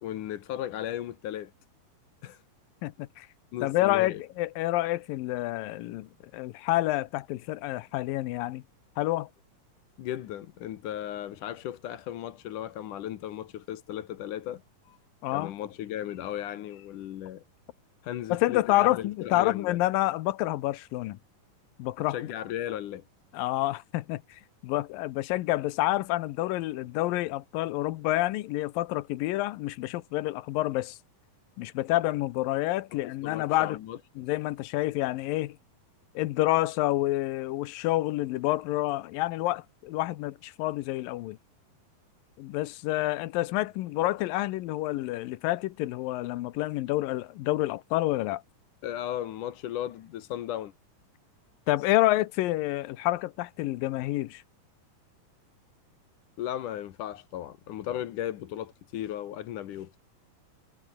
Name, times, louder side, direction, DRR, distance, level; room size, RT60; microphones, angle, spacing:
voice 1, 0.0-1.5 2.2-2.4 3.5-4.2 10.0-15.0 15.3-17.4 18.0-19.8 22.0-23.0 33.2-34.2 48.8-50.7 56.4-60.0, left 12 dB, 70° left, 2.7 m, -36 dB
voice 2, 2.8-3.3 3.6-8.6 9.0-9.3 15.2-15.5 18.3-21.2 21.8-22.2 23.3-31.0 31.6-33.8 34.2-35.6 36.2-41.4 42.4-48.4 51.7-54.4, left 17 dB, 85° left, 2.6 m, -28 dB
omnidirectional pair, 3.9 m